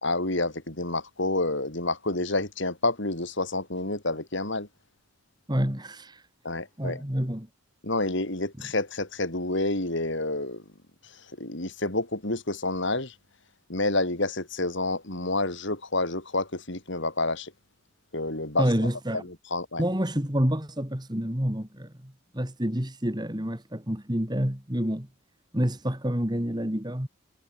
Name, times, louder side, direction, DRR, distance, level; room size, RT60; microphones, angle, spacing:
voice 1, 0.0-4.7 6.4-7.0 7.8-10.6 11.0-13.1 13.7-17.5 18.1-18.6 19.2-19.8, left 2 dB, 55° left, 3.3 m, -29 dB
voice 2, 5.5-6.3 6.8-7.5 18.6-19.3 19.8-25.1 25.5-27.1, equal, 20° right, 2.6 m, -28 dB
head